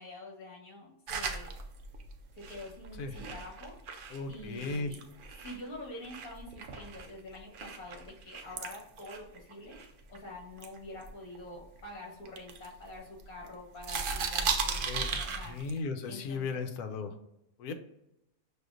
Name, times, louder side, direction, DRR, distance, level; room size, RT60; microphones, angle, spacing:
voice 1, 0.0-1.5 2.4-3.7 4.3-5.0 5.4-9.8 10.1-15.6 16.1-16.7, left 1 dB, 70° left, -2 dB, 1.7 m, -46 dB
sound 1, 1.1-5.7 6.0-10.2 10.6-11.8 12.3-13.5 13.8-15.8, right 5 dB, 75° right, 0.4 m, -37 dB
voice 2, 4.1-4.9 14.8-15.1 15.4-17.1 17.6-17.7, left 4 dB, 90° left, 7 dB, 1.1 m, -36 dB
6.2 x 2.5 x 2.4 m, 0.84 s
omnidirectional pair, 1.5 m